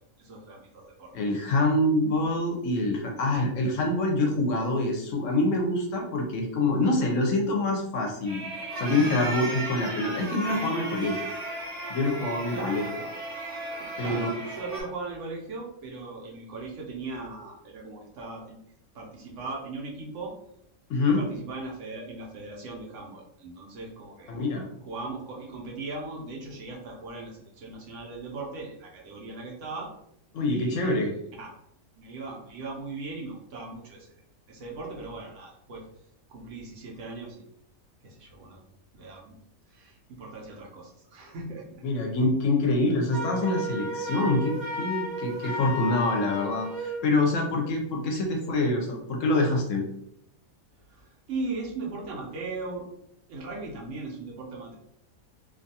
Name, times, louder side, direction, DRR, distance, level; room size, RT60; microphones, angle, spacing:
voice 1, 0.2-1.1 12.5-13.1 13.8-18.6 18.9-20.3 21.0-24.3 24.9-29.9 30.5-31.5 32.0-34.2 34.5-35.8 36.3-37.4 38.0-38.6 38.9-39.4 39.7-41.8 50.9-52.9 53.3-54.8, right 3 dB, 70° right, -1 dB, 0.9 m, -38 dB
voice 2, 1.1-8.4 8.8-11.2 11.9-12.8 14.0-14.3 20.9-21.2 24.3-24.7 30.3-31.1 41.8-49.9, left 2 dB, 70° left, 1 dB, 0.9 m, -26 dB
sound 1, 8.3-14.8, right 2 dB, 35° right, 0.7 m, -35 dB
Wind instrument woodwind instrument, 43.1-47.1, left 1 dB, 25° left, 0.7 m, -33 dB
2.5 x 2.3 x 2.7 m, 0.75 s
omnidirectional pair, 1.5 m